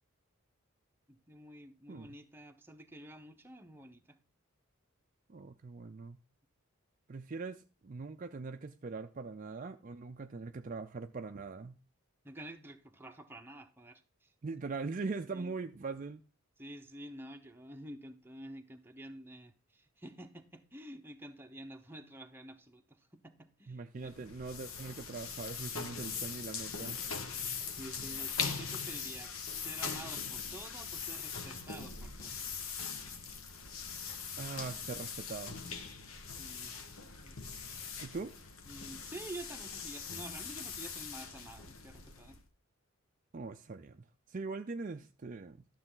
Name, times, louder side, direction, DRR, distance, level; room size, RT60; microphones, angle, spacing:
voice 1, 1.1-4.2 12.2-14.3 15.3-15.5 16.6-24.1 27.7-32.6 36.4-36.7 37.2-37.4 38.6-42.4, right 1 dB, 10° right, 0.8 m, -49 dB
voice 2, 5.3-6.2 7.1-11.8 14.4-16.2 23.7-27.0 34.4-35.5 38.0-38.3 43.3-45.6, right 4 dB, 40° right, 0.4 m, -41 dB
sound 1, 24.0-42.5, left 6 dB, 70° left, 1.2 m, -41 dB
12.0 x 6.8 x 3.8 m
head